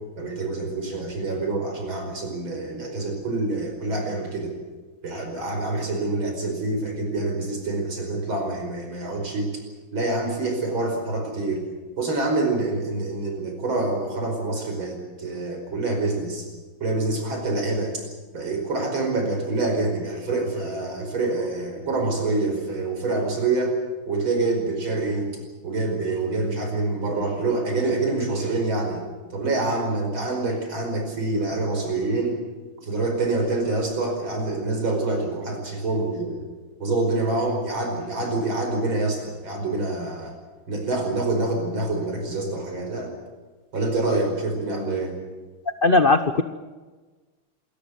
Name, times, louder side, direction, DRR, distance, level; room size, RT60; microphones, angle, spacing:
voice 1, 0.2-4.5 5.0-9.6 9.9-11.6 12.0-16.5 16.8-18.0 18.3-23.8 24.1-25.3 25.6-29.0 29.3-32.4 32.8-36.4 36.8-40.3 40.7-43.1 43.7-45.1, right 2 dB, 65° right, 3 dB, 5.8 m, -26 dB
voice 2, 45.8-46.4, left 3 dB, 70° left, 9 dB, 0.5 m, -17 dB
27.5 x 14.0 x 9.3 m, 1.3 s
omnidirectional pair, 2.4 m